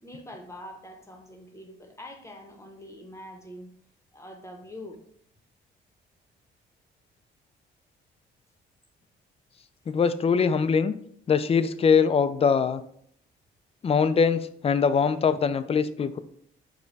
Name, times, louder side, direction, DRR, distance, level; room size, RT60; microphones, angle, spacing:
voice 1, 0.0-3.7 4.1-5.0, left 1 dB, 15° left, 4 dB, 0.8 m, -44 dB
voice 2, 9.9-10.9 11.3-12.8 13.8-16.2, left 6 dB, 30° left, 12 dB, 0.3 m, -22 dB
5.1 x 2.2 x 4.0 m, 0.64 s
cardioid pair, 90°, 20 cm